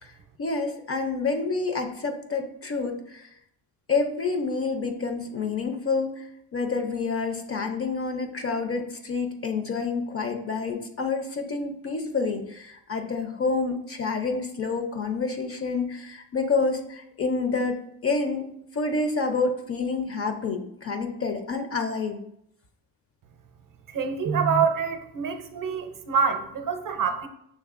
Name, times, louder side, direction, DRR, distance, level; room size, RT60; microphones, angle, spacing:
voice 1, 0.4-3.3 3.9-22.2, left 4 dB, 35° left, 6 dB, 0.5 m, -28 dB
voice 2, 23.9-27.3, right 6 dB, 50° right, 6 dB, 0.6 m, -26 dB
6.4 x 3.2 x 2.4 m, 0.76 s
cardioid pair, 90°, 42 cm